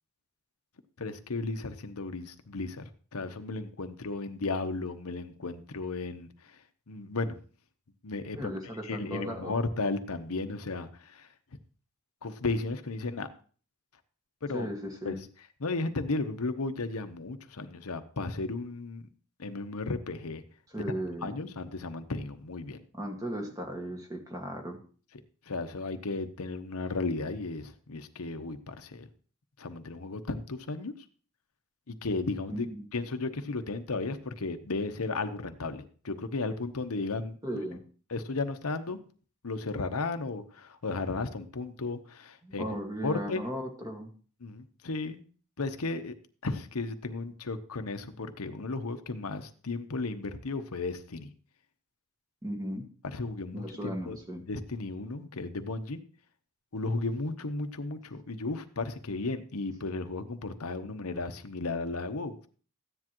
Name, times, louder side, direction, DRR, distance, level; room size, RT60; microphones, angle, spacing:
voice 1, 1.0-2.8 3.1-6.5 6.9-7.4 8.0-8.5 8.8-11.3 12.2-13.3 14.4-14.7 15.0-15.2 15.6-19.1 19.4-20.4 20.8-20.9 21.2-22.8 25.5-29.1 29.6-30.9 31.9-37.4 38.1-39.0 39.4-42.6 43.0-43.4 44.4-45.2 45.6-46.1 46.4-51.3 53.1-54.2 54.5-56.0 56.7-62.5, left 3 dB, 90° left, 8 dB, 1.0 m, -34 dB
voice 2, 8.3-9.5 14.5-15.2 20.7-21.3 22.9-24.8 32.5-32.9 37.4-37.8 42.4-44.1 52.4-52.9 53.5-54.4, equal, 15° right, 3 dB, 1.8 m, -36 dB
14.5 x 9.9 x 3.0 m, 0.41 s
head